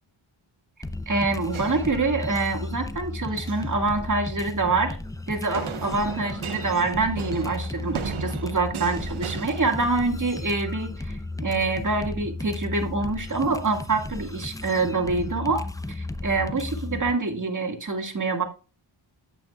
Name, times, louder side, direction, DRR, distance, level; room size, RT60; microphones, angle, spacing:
sound 1, 0.8-17.1, left 2 dB, 5° left, 0.6 m, -34 dB
voice 1, 1.1-5.0 5.3-18.4, right 3 dB, 35° right, 4 dB, 2.0 m, -26 dB
sound 2, 1.5-2.6 3.3-3.8 5.5-10.4, right 7 dB, 70° right, 1.0 m, -37 dB
9.0 x 8.3 x 2.4 m, 0.33 s
cardioid pair, 60°, 50 cm